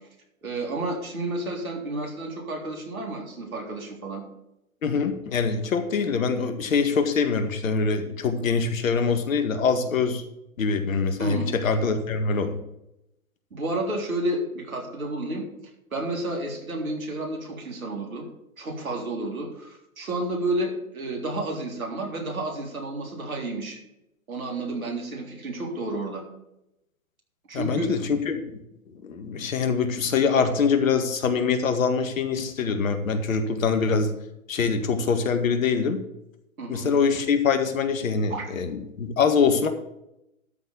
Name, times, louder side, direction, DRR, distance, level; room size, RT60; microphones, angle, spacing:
voice 1, 0.4-4.2 11.2-11.5 13.5-15.5 15.9-18.3 18.6-23.8 24.3-26.2 27.5-27.9 36.6-36.9 38.3-38.5, right 2 dB, 85° right, 1 dB, 3.7 m, -31 dB
voice 2, 4.8-10.2 10.6-12.6 27.5-28.6 29.0-34.1 34.5-36.0 36.7-39.7, left 5 dB, 70° left, 7 dB, 2.0 m, -24 dB
12.5 x 4.5 x 8.3 m, 0.85 s
hypercardioid pair, 120°, 41 cm